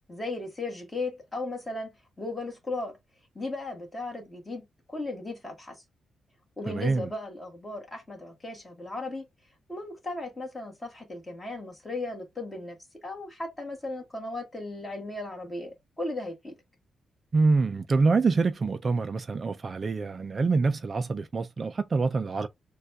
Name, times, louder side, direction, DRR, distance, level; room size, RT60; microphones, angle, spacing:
voice 1, 0.1-3.0 3.3-5.8 6.6-9.2 9.7-16.5, left 2 dB, 15° left, 1.6 m, -36 dB
voice 2, 6.7-7.1 17.3-22.5, right 4 dB, 30° right, 0.3 m, -25 dB
6.4 x 2.3 x 2.6 m
wide cardioid pair, 160°, 0 cm